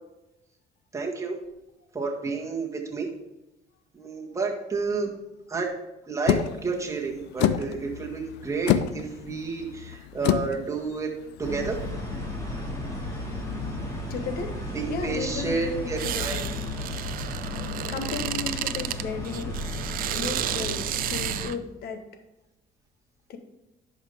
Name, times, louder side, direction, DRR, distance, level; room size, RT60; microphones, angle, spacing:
voice 1, 0.9-1.4 1.9-3.1 3.9-5.1 5.5-5.7 6.1-11.1 11.4-11.8 14.7-16.4, right 4 dB, 20° right, -1 dB, 1.7 m, -30 dB
sound 1, 6.3-11.9, left 10 dB, 85° left, 0.5 m, -28 dB
sound 2, 11.4-21.4, left 1 dB, 20° left, 2.3 m, -34 dB
voice 2, 14.1-14.5 14.8-16.6 17.9-19.7 20.2-22.0 23.3-23.4, left 5 dB, 65° left, 7 dB, 1.1 m, -34 dB
sound 3, 16.0-21.6, right 12 dB, 60° right, 0.4 m, -32 dB
11.0 x 5.5 x 3.5 m, 0.94 s
cardioid pair, 110°, 17 cm